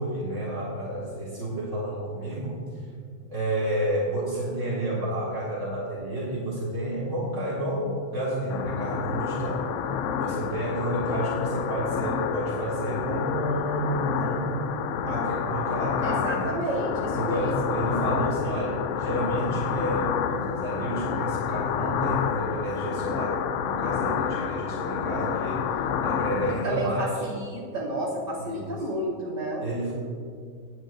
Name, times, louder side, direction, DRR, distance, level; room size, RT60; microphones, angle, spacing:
voice 1, 0.0-2.6 3.3-9.7 10.2-14.6 15.1-16.6 17.1-25.6 26.0-27.3 28.4-28.8 29.6-29.9, right 1 dB, 55° right, -8 dB, 2.4 m, -30 dB
sound 1, 8.5-26.6, left 8 dB, 65° left, 0.8 m, -29 dB
voice 2, 16.0-17.7 26.6-29.7, right 1 dB, 35° right, -8 dB, 3.0 m, -31 dB
18.0 x 9.3 x 2.6 m, 2.3 s
omnidirectional pair, 1.5 m